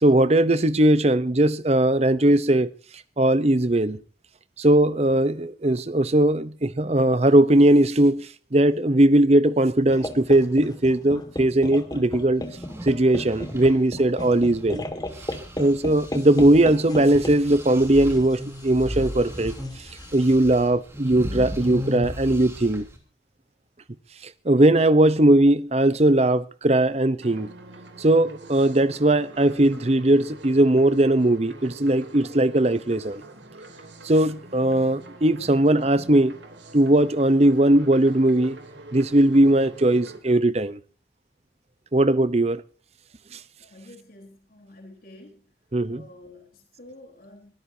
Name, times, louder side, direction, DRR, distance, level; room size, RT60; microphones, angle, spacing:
voice 1, 0.0-2.7 3.2-4.0 4.6-12.4 12.8-14.8 15.6-19.5 20.1-22.8 24.4-27.5 28.0-33.2 34.0-36.4 36.7-38.6 38.9-40.8 41.9-42.6 45.7-46.0, right 1 dB, 35° right, 0.8 m, -19 dB
sound 1, 9.9-20.3, left 1 dB, 20° left, 1.9 m, -36 dB
sound 2, 12.4-14.8 15.1-23.0, left 1 dB, 15° right, 3.2 m, -36 dB
sound 3, 27.2-40.2, right 1 dB, 80° right, 3.2 m, -44 dB
voice 2, 43.6-45.5 45.9-47.5, left 1 dB, 50° left, 4.1 m, -48 dB
23.0 x 14.5 x 2.8 m
head